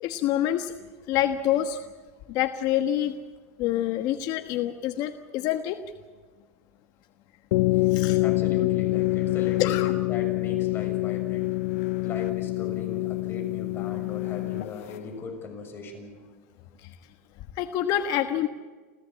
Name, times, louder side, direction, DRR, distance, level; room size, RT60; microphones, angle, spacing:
voice 1, 0.0-0.7 1.1-1.8 2.3-3.1 3.6-5.8 7.9-8.2 9.6-9.9 16.8-16.9 17.6-18.5, left 12 dB, 55° left, 8 dB, 1.3 m, -26 dB
sound 1, 7.5-15.0, left 20 dB, 75° left, 0.6 m, -26 dB
voice 2, 7.7-11.5 12.0-16.1, left 4 dB, 30° left, 3 dB, 6.7 m, -39 dB
29.0 x 14.0 x 8.5 m, 1.5 s
supercardioid pair, 125°, 8 cm